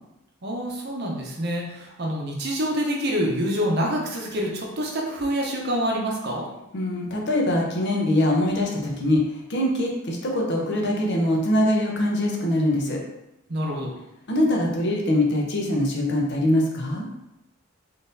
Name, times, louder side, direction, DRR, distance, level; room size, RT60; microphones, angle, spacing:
voice 1, 0.4-6.4 13.5-13.9, equal, 50° right, -1 dB, 0.7 m, -26 dB
voice 2, 6.7-13.0 14.3-17.1, left 1 dB, 50° left, 0 dB, 0.6 m, -23 dB
3.8 x 2.6 x 2.6 m, 0.91 s
head